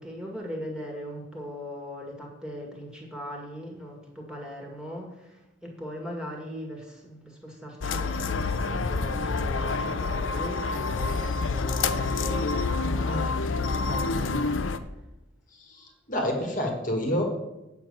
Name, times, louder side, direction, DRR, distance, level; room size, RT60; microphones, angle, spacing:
voice 1, 0.0-14.8, equal, 5° right, -1 dB, 1.9 m, -40 dB
sound 1, 7.8-14.8, left 3 dB, 70° left, 0.7 m, -27 dB
voice 2, 15.5-17.2, equal, 40° left, 1 dB, 1.6 m, -28 dB
8.7 x 5.9 x 7.7 m, 0.95 s
head